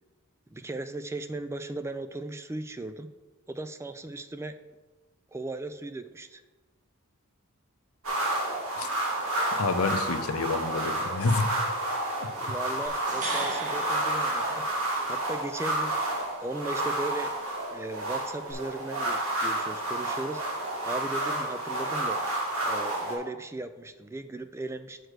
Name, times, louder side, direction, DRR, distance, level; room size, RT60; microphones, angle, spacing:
voice 1, 0.5-3.1 3.5-4.6 5.3-6.4 12.3-14.7 15.1-16.0 16.4-17.3 17.7-20.4 20.8-22.2 22.6-25.0, right 2 dB, 15° right, 11 dB, 0.3 m, -37 dB
sound 1, 8.0-23.2, right 1 dB, 70° right, 1.9 m, -30 dB
voice 2, 9.6-11.5 12.2-12.3, left 3 dB, 85° left, 8 dB, 0.7 m, -28 dB
sound 2, 12.9-15.1 18.5-18.6, right 2 dB, 35° right, 1.2 m, -38 dB
6.5 x 4.6 x 6.4 m, 1.2 s
head